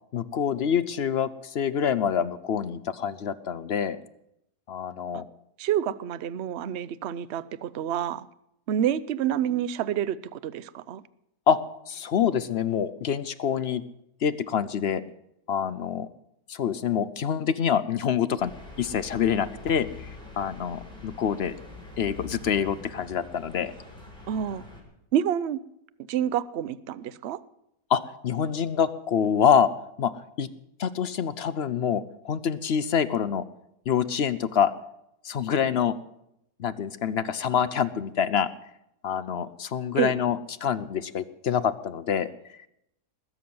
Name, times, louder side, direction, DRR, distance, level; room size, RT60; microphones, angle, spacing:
voice 1, 0.1-4.0 4.7-5.3 11.5-11.6 11.9-13.8 14.2-15.0 15.5-16.1 16.5-18.5 18.8-21.6 22.0-23.7 27.9-29.7 30.0-30.5 30.8-33.4 33.9-34.7 35.2-36.0 36.6-38.5 39.0-42.3, left 8 dB, 55° left, 14 dB, 0.7 m, -26 dB
voice 2, 5.6-8.3 8.7-11.0 24.3-24.7 25.1-25.6 26.1-27.4 40.0-40.1, right 10 dB, 55° right, 17 dB, 0.8 m, -28 dB
sound 1, 18.4-24.8, left 3 dB, 5° left, 5.8 m, -44 dB
20.5 x 7.2 x 9.4 m, 0.80 s
omnidirectional pair, 1.7 m